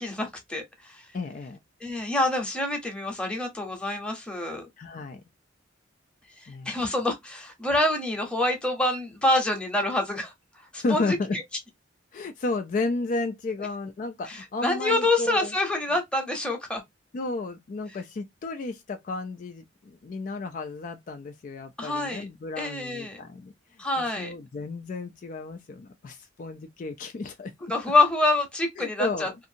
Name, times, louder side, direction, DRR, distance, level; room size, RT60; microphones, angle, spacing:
voice 1, 0.0-1.0 1.8-4.7 6.4-10.3 10.7-11.4 14.3-16.8 21.8-22.2 22.6-23.2 23.8-24.3 27.7-29.3, left 2 dB, 5° left, 0.8 m, -26 dB
voice 2, 1.1-1.6 4.8-5.2 6.5-6.8 10.8-11.4 12.1-15.5 17.1-23.5 24.0-27.5 27.8-27.9 28.8-29.4, left 3 dB, 45° left, 0.3 m, -33 dB
2.6 x 2.5 x 2.6 m
head